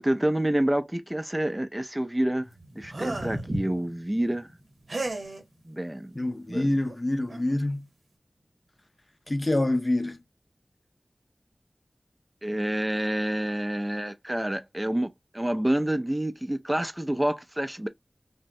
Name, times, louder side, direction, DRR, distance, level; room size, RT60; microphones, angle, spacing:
voice 1, 0.0-2.5 2.7-4.5 5.7-6.1 6.5-6.7 12.4-17.9, right 1 dB, 20° right, 0.4 m, -28 dB
sound 1, 2.4-8.4, equal, 60° right, 0.7 m, -41 dB
sound 2, 2.9-3.5 4.9-5.4 6.8-6.9 7.3-7.5, right 2 dB, 90° right, 0.8 m, -34 dB
voice 2, 6.1-7.9 9.3-10.2, left 1 dB, 40° left, 0.6 m, -26 dB
3.4 x 2.0 x 2.6 m
wide cardioid pair, 45°, 0 cm